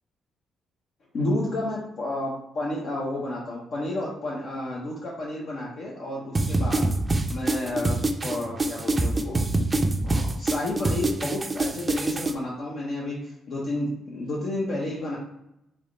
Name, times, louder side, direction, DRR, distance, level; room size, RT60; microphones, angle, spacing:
voice 1, 1.1-6.9 7.3-9.4 10.0-15.2, left 1 dB, 60° left, -4 dB, 0.8 m, -31 dB
sound 1, 6.3-12.3, right 2 dB, 25° right, 0.4 m, -25 dB
3.4 x 3.3 x 3.9 m, 0.83 s
cardioid pair, 90°, 0 cm